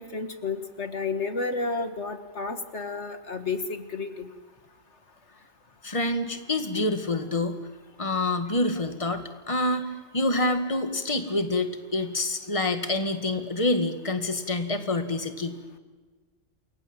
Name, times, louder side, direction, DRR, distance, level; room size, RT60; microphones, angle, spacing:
voice 1, 0.0-4.3, left 4 dB, 60° left, 8 dB, 2.0 m, -31 dB
voice 2, 5.8-7.6 8.0-15.6, left 2 dB, 25° left, 8 dB, 2.1 m, -27 dB
29.0 x 22.0 x 9.1 m, 1.3 s
omnidirectional pair, 1.3 m